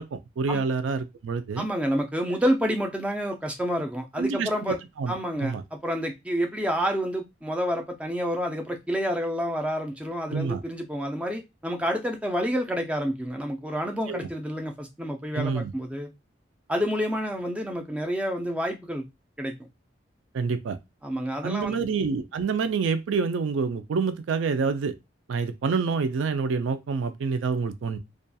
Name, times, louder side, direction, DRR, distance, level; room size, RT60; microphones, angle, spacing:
voice 1, 0.0-1.7 4.2-5.1 5.4-5.6 10.3-10.6 14.1-14.2 15.4-15.7 20.3-20.8 21.4-24.9 25.3-28.0, right 5 dB, 90° right, 0.4 m, -27 dB
voice 2, 1.6-4.8 5.1-16.1 16.7-19.0 19.4-19.7 21.0-21.8, equal, 5° right, 0.4 m, -29 dB
2.7 x 2.3 x 2.2 m
head